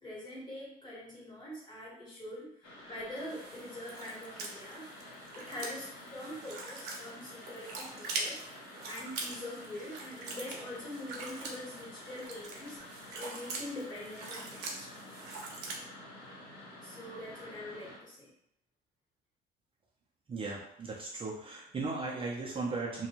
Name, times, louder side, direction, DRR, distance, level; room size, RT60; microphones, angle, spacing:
voice 1, 0.0-2.5 2.8-4.9 5.3-8.4 8.8-12.8 13.1-14.9 16.8-18.3, left 1 dB, 25° left, -6 dB, 1.4 m, -44 dB
sound 1, 2.6-18.0, left 1 dB, 85° left, 1.1 m, -50 dB
sound 2, 3.1-15.8, right 3 dB, 80° right, 0.7 m, -43 dB
voice 2, 20.3-23.1, right 3 dB, 30° right, -4 dB, 0.5 m, -37 dB
2.5 x 2.2 x 3.0 m, 0.74 s
cardioid pair, 110°, 17 cm